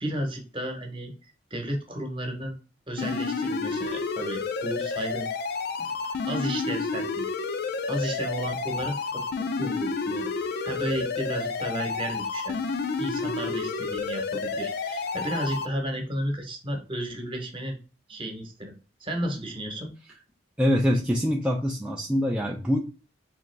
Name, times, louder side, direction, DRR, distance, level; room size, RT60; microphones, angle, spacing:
voice 1, 0.0-2.6 2.9-5.3 6.3-7.3 7.9-8.9 9.3-10.3 10.6-12.6 13.0-17.8 18.1-18.7 19.0-19.9, right 1 dB, 30° right, 3 dB, 1.0 m, -33 dB
sound 1, 3.0-15.7, left 4 dB, 55° left, 0.4 m, -30 dB
voice 2, 20.6-22.8, equal, 5° right, 0 dB, 0.3 m, -24 dB
3.5 x 3.0 x 3.3 m, 0.33 s
head